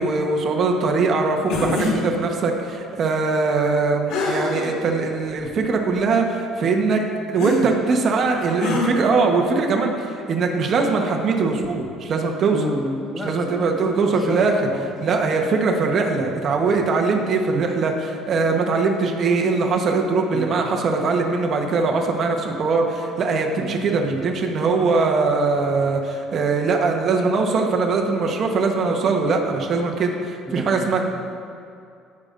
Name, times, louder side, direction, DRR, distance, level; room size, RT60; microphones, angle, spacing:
voice 1, 0.0-7.0 7.3-12.7 13.2-14.5 15.0-31.0, right 4 dB, 45° right, 2 dB, 1.1 m, -21 dB
sound 1, 1.5-2.0 4.1-4.7 5.4-5.5 7.4-7.6 8.6-8.9, left 3 dB, 75° left, 2.2 m, -24 dB
voice 2, 12.5-14.9 20.3-20.5 23.6-23.8 30.5-30.9, left 1 dB, 5° left, 1 dB, 1.0 m, -31 dB
18.0 x 6.6 x 2.6 m, 2.4 s
cardioid pair, 115°, 0 cm